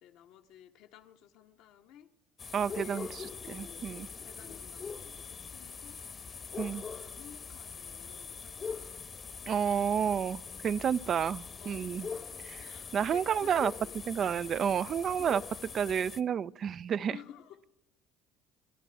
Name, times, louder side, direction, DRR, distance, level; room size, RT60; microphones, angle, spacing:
voice 1, 0.0-2.1 2.5-6.0 6.6-8.5 10.5-10.7 11.6-12.3 12.6-14.0 14.3-14.5 15.2-15.3 17.1-17.6, left 10 dB, 75° left, 5 dB, 1.3 m, -54 dB
sound 1, 2.4-16.2, left 5 dB, 40° left, 1.1 m, -43 dB
voice 2, 2.5-4.1 6.6-6.8 9.5-12.1 12.9-13.7 14.1-15.4 15.7-17.1, right 8 dB, 50° right, 16 dB, 0.5 m, -30 dB
29.5 x 12.5 x 3.5 m, 0.89 s
supercardioid pair, 75°, 0 cm